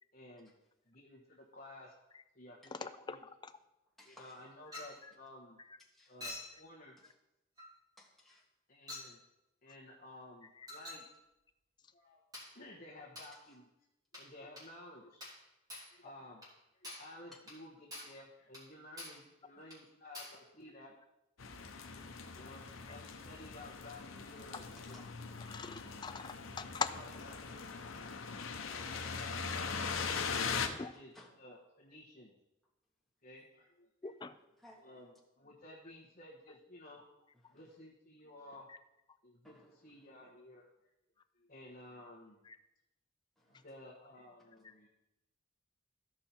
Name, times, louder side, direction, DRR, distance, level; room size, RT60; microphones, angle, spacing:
voice 1, 0.1-0.5 0.8-2.0 2.3-3.2 4.0-5.6 6.1-7.0 8.7-9.2 9.6-11.1 11.9-12.2 12.5-13.6 14.1-15.2 15.9-16.5 16.8-20.9 21.8-25.0 26.9-27.5 28.7-29.9 30.8-32.3 33.2-33.9 34.8-37.0 37.4-38.7 39.2-40.7 41.3-42.4 43.4-44.9, left 1 dB, 40° left, 1.3 m, -54 dB
voice 2, 2.7-3.2 3.4-3.5 25.5-26.9 30.6-30.9 34.0-34.3, left 5 dB, 20° left, 0.4 m, -41 dB
voice 3, 4.0-4.4 5.9-6.2 7.0-7.1 8.0-8.4 24.9-25.0 30.9-31.3 33.4-33.5 34.0-34.2 34.6-34.8 37.5-37.6 39.4-39.8 43.4-43.7, left 1 dB, ahead, 1.7 m, -60 dB
Chink clink, 4.7-5.0 6.2-6.6 7.6-7.7 8.9-9.1 10.7-11.1 12.3-12.6 13.2-13.4 14.1-14.3 14.6-14.7 15.2-15.4 15.7-15.9 16.4-16.5 16.8-17.1 17.5-17.6 17.9-18.2 18.5-18.7 19.0-19.3 19.7-19.8 20.1-20.4, left 1 dB, 20° right, 3.4 m, -47 dB
sound 1, 21.4-30.7, left 5 dB, 80° left, 0.9 m, -41 dB
14.0 x 5.5 x 4.4 m
head